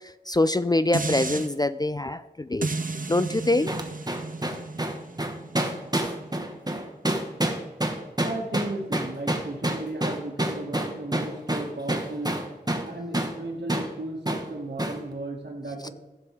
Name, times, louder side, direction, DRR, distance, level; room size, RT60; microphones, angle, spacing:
voice 1, 0.3-2.7 3.1-3.7 15.8-15.9, left 2 dB, 20° left, 13 dB, 0.3 m, -24 dB
sound 1, 0.9-1.5 2.6-7.8 8.2-8.3, right 3 dB, 50° right, 0.7 m, -34 dB
sound 2, 3.7-12.9 13.1-13.4 13.7-13.9 14.3-14.5 14.8-15.0, right 1 dB, 20° right, 1.1 m, -28 dB
voice 2, 8.2-12.4 12.8-15.9, right 2 dB, 70° right, -1 dB, 2.0 m, -35 dB
15.0 x 5.4 x 3.5 m, 1.1 s
wide cardioid pair, 45°, 18 cm